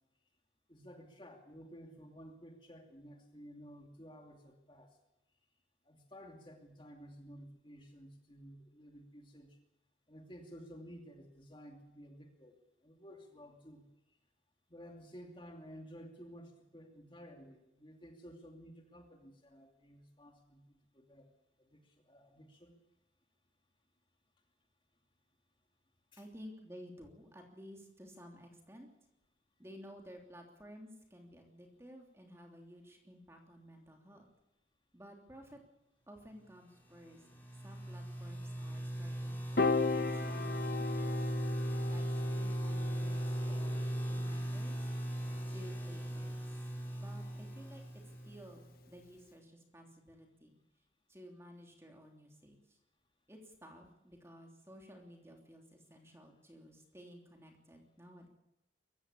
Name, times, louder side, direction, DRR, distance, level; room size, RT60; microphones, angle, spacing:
voice 1, 0.7-5.0 5.8-9.6 10.1-13.9 14.7-21.3 21.6-22.7 26.1-26.2, equal, 25° left, 3 dB, 2.7 m, -54 dB
voice 2, 26.2-28.9 29.6-34.2 34.9-35.6 36.1-37.2 37.6-41.3 41.6-44.8 45.5-46.6 46.9-50.5 51.1-52.8 53.3-58.3, equal, 15° right, 2 dB, 3.2 m, -54 dB
sound 1, 36.9-48.7, right 1 dB, 10° left, 4.6 m, -38 dB
Piano, 39.6-45.9, left 4 dB, 50° left, 1.1 m, -37 dB
22.5 x 15.5 x 8.7 m, 0.91 s
head